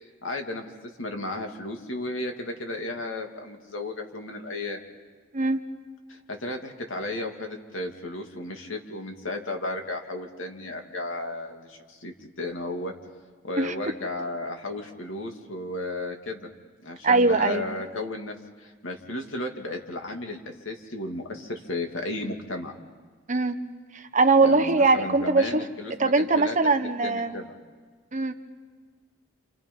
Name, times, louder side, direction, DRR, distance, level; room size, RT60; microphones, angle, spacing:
voice 1, 0.2-0.7 1.0-4.8 6.1-12.9 13.4-16.5 16.8-22.7 24.4-26.7 27.0-27.5, left 2 dB, 80° left, 3 dB, 2.7 m, -34 dB
voice 2, 17.0-17.6 23.3-23.7 24.1-25.6 26.0-27.4 28.1-28.3, right 3 dB, 40° right, 8 dB, 1.2 m, -21 dB
29.0 x 28.5 x 5.6 m, 1.5 s
head